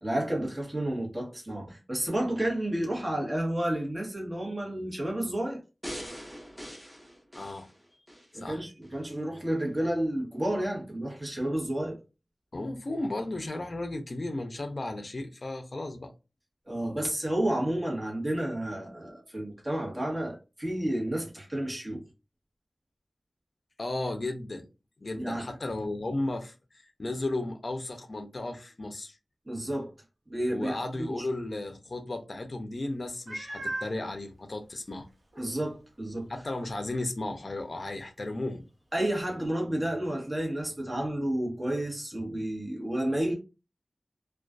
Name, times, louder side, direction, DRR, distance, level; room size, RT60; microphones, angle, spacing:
voice 1, 0.0-5.6 8.3-12.0 16.7-22.0 25.2-25.5 29.5-29.9 30.3-31.3 35.4-36.3 38.9-43.3, right 1 dB, 25° right, 1.0 m, -31 dB
sound 1, 5.8-8.3 8.8-8.9, equal, ahead, 0.7 m, -42 dB
voice 2, 7.3-7.7 8.3-8.6 12.5-16.1 23.8-24.7 25.0-29.2 30.5-35.1 36.3-38.6, left 2 dB, 50° left, 0.4 m, -34 dB
Meow, 33.3-34.0 34.7-34.8 35.3-35.4 39.4-39.5, right 1 dB, 60° right, 0.8 m, -36 dB
2.4 x 2.2 x 2.3 m
wide cardioid pair, 60°, 0 cm